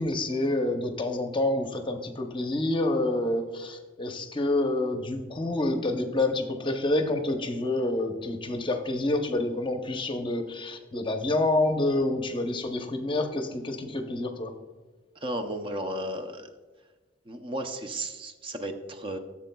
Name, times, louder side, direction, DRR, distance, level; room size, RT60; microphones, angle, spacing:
voice 1, 0.0-14.5, left 2 dB, 25° left, 5 dB, 0.7 m, -28 dB
voice 2, 15.2-16.5 17.3-19.2, right 1 dB, 30° right, 6 dB, 0.6 m, -34 dB
14.5 x 7.3 x 2.2 m, 1.2 s
head